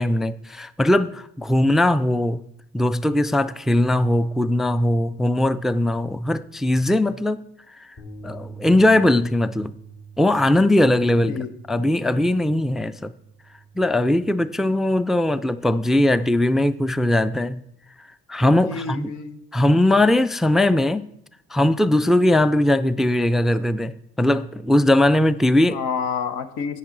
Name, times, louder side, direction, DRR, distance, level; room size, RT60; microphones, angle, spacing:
voice 1, 0.0-2.4 2.7-7.5 8.2-9.8 10.2-13.1 13.8-17.6 18.3-19.1 19.5-21.1 21.5-25.8, left 1 dB, ahead, 0.3 m, -20 dB
sound 1, 8.0-14.2, right 4 dB, 55° left, 3.4 m, -44 dB
voice 2, 18.5-19.4 25.7-26.8, left 6 dB, 90° left, 0.9 m, -29 dB
11.0 x 8.6 x 3.8 m
supercardioid pair, 70°, 29 cm